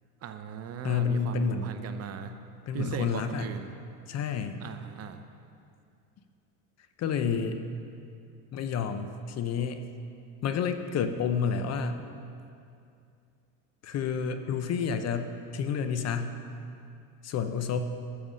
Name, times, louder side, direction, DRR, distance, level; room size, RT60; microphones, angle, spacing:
voice 1, 0.2-2.3 2.7-3.7 4.6-5.2, right 7 dB, 40° right, 8 dB, 0.7 m, -38 dB
voice 2, 0.8-1.8 2.7-3.5 4.1-4.6 7.0-7.6 8.5-9.8 10.4-12.0 13.8-16.4 17.2-17.8, left 6 dB, 40° left, 9 dB, 0.8 m, -29 dB
13.0 x 7.0 x 6.3 m, 2.4 s
supercardioid pair, 120°, 40 cm